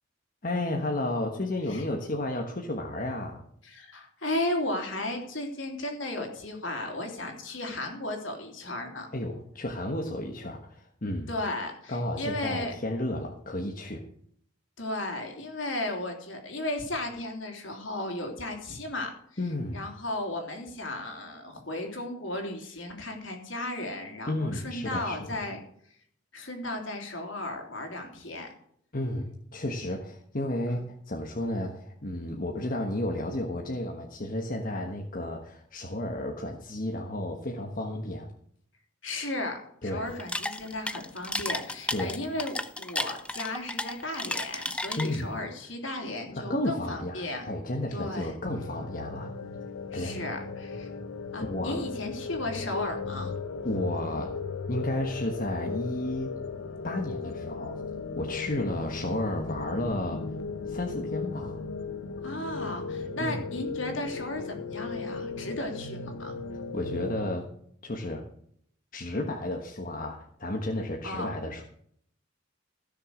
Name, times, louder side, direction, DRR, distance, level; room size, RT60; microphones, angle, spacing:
voice 1, 0.4-3.4 9.1-11.3 11.9-14.0 19.4-19.8 24.3-25.2 28.9-38.3 39.8-40.1 41.9-42.2 45.0-45.3 46.3-49.3 49.9-50.2 51.4-51.9 53.6-54.3 54.7-56.3 56.8-57.8 58.2-60.2 60.7-61.6 63.2-63.4 66.5-67.5 67.8-68.2 68.9-71.6, left 1 dB, 40° left, 1 dB, 1.4 m, -32 dB
voice 2, 3.6-9.1 11.3-12.7 14.8-19.1 19.7-25.6 26.3-28.5 30.7-30.8 39.0-47.5 47.9-48.3 49.9-50.9 51.3-53.3 62.2-66.4 71.0-71.3, left 1 dB, 65° left, 3 dB, 3.4 m, -35 dB
sound 1, 40.1-45.4, left 1 dB, 5° left, 0.6 m, -33 dB
sound 2, 48.4-67.3, left 4 dB, 85° left, 0.9 m, -36 dB
16.0 x 6.7 x 6.5 m, 0.65 s
head